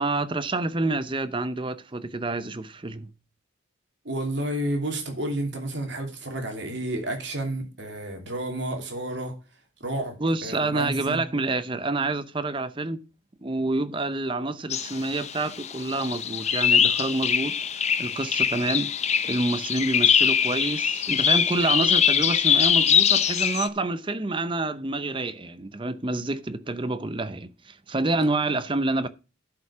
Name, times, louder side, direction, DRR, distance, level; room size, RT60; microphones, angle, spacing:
voice 1, 0.0-3.1 10.2-13.0 13.4-18.9 19.2-29.1, right 2 dB, 25° right, 0.6 m, -28 dB
voice 2, 4.0-9.3 9.8-11.2, right 1 dB, 60° right, 2.8 m, -31 dB
sound 1, 14.7-23.7, left 8 dB, 35° left, 0.6 m, -23 dB
11.5 x 5.3 x 4.9 m
head